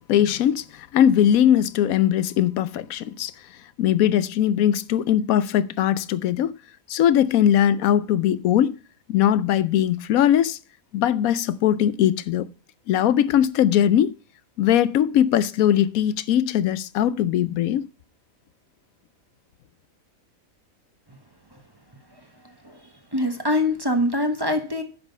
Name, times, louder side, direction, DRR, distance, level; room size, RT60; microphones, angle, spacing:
voice 1, 0.1-3.3 3.8-6.5 6.9-8.8 9.1-10.6 10.9-12.5 12.9-14.1 14.6-17.8, left 10 dB, 85° left, 1.1 m, -20 dB
voice 2, 23.1-24.8, left 1 dB, 20° right, 1.2 m, -23 dB
9.8 x 6.1 x 5.4 m
omnidirectional pair, 1.4 m